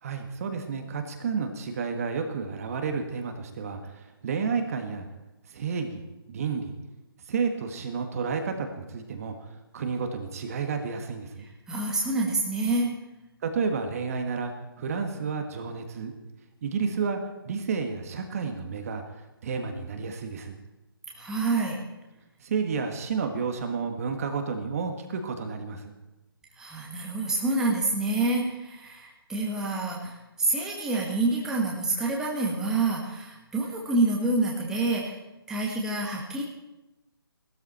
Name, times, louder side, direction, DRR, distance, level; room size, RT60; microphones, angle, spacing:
voice 1, 0.0-5.1 5.5-6.8 7.3-9.5 9.7-11.4 13.4-16.1 16.6-17.2 17.4-19.0 19.4-20.6 22.4-25.9, right 5 dB, 35° right, 5 dB, 1.5 m, -31 dB
voice 2, 11.4-12.9 21.1-21.8 26.6-35.2 35.5-36.4, right 2 dB, 5° right, -3 dB, 1.5 m, -27 dB
17.0 x 13.0 x 4.3 m, 1.0 s
figure-of-eight pair, 150°, 13 cm